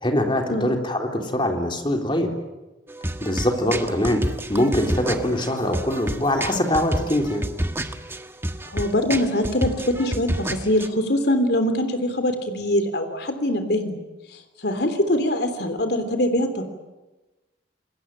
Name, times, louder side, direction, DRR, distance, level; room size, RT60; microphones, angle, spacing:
voice 1, 0.0-2.3 3.2-7.5, left 1 dB, 25° left, 3 dB, 3.5 m, -23 dB
sound 1, 2.9-10.9, right 1 dB, 15° right, 1.4 m, -29 dB
voice 2, 8.7-14.0 14.6-16.6, left 1 dB, 60° left, 8 dB, 3.3 m, -23 dB
27.5 x 21.5 x 9.1 m, 1.1 s
head